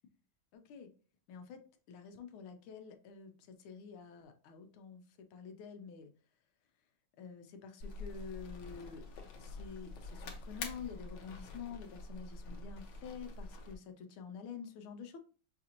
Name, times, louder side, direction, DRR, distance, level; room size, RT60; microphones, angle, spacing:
voice 1, 0.5-0.9 1.3-6.1 7.2-9.1 9.4-15.2, left 6 dB, 85° left, 7 dB, 1.5 m, -48 dB
sound 1, 7.8-13.8, left 3 dB, 70° left, 1.3 m, -46 dB
5.7 x 2.5 x 2.8 m, 0.39 s
omnidirectional pair, 2.3 m